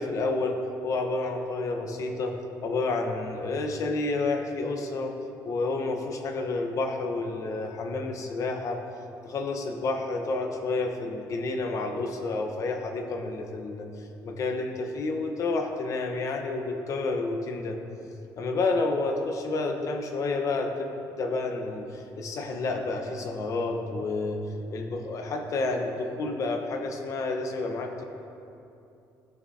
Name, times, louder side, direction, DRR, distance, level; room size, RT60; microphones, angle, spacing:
voice 1, 0.0-2.4 2.6-5.2 5.4-8.8 9.2-17.8 18.4-20.9 21.2-24.4 24.7-28.0, left 3 dB, 50° left, 4 dB, 0.9 m, -30 dB
14.5 x 6.0 x 2.7 m, 2.7 s
cardioid pair, 125°, 7 cm